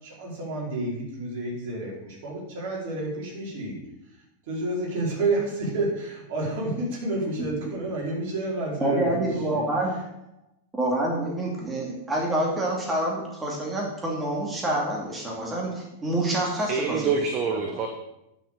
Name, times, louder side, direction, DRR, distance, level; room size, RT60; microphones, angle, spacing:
voice 1, 0.0-3.8 4.5-9.6, right 2 dB, 50° right, -3 dB, 4.8 m, -30 dB
voice 2, 8.8-9.9 10.8-17.2 17.5-17.6, right 1 dB, 15° right, -2 dB, 2.5 m, -27 dB
voice 3, 16.6-17.9, right 5 dB, 35° right, 4 dB, 1.2 m, -26 dB
10.0 x 6.3 x 6.8 m, 0.87 s
figure-of-eight pair, 90°, 0 cm